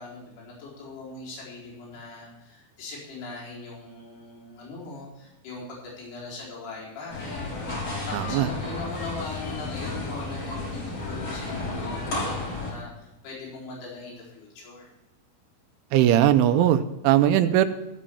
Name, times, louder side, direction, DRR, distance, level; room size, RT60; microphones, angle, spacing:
voice 1, 0.0-14.9, left 3 dB, 60° left, -5 dB, 6.0 m, -40 dB
sound 1, 7.1-12.7, left 2 dB, 35° left, 5.4 m, -32 dB
voice 2, 8.1-8.5 15.9-17.7, right 11 dB, 90° right, 10 dB, 3.1 m, -20 dB
15.0 x 5.4 x 7.0 m, 0.97 s
omnidirectional pair, 5.4 m